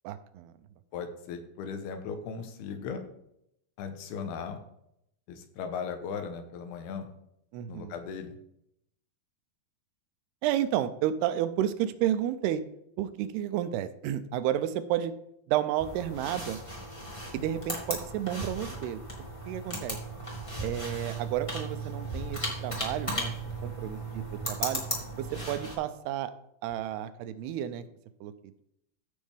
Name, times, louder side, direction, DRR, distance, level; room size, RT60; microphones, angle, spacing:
voice 1, 0.0-0.5 7.5-7.9 10.4-12.6 13.0-15.1 15.5-16.6 17.3-19.0 19.5-20.0 20.6-23.3 23.6-24.8 25.2-26.3 26.6-27.8 28.2-28.3, right 11 dB, 85° right, 11 dB, 2.6 m, -31 dB
voice 2, 0.9-3.1 3.8-4.6 5.3-7.1 7.7-8.4, left 6 dB, 80° left, 7 dB, 2.9 m, -37 dB
sound 1, 15.8-25.7, right 1 dB, 25° left, 0.7 m, -36 dB
15.0 x 5.3 x 3.4 m, 0.76 s
omnidirectional pair, 4.6 m